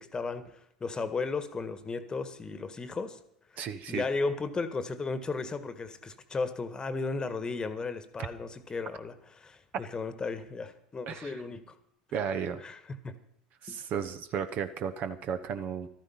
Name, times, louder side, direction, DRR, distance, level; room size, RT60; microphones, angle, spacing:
voice 1, 0.0-3.2 3.9-11.7 12.6-13.2 13.7-13.8, left 4 dB, 20° left, 13 dB, 1.5 m, -35 dB
voice 2, 3.6-4.0 11.1-11.3 12.1-12.6 13.6-15.9, right 7 dB, 45° right, 10 dB, 1.1 m, -34 dB
14.5 x 13.5 x 5.7 m, 0.72 s
figure-of-eight pair, 75°, 4 cm